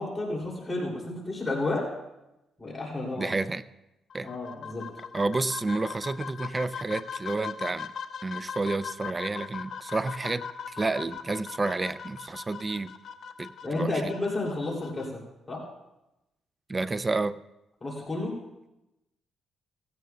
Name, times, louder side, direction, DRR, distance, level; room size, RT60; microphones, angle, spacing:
voice 1, 0.0-1.8 2.6-3.4 4.2-4.9 13.6-15.2 15.5-15.6 17.8-18.3, left 2 dB, 20° left, -3 dB, 2.9 m, -31 dB
voice 2, 3.2-3.6 4.1-4.3 5.1-7.9 8.2-12.9 13.4-14.1 16.7-17.4, right 3 dB, 20° right, 14 dB, 0.4 m, -30 dB
sound 1, 4.1-15.1, left 7 dB, 60° left, 0.6 m, -40 dB
17.0 x 16.0 x 2.3 m, 0.94 s
cardioid pair, 120°, 0 cm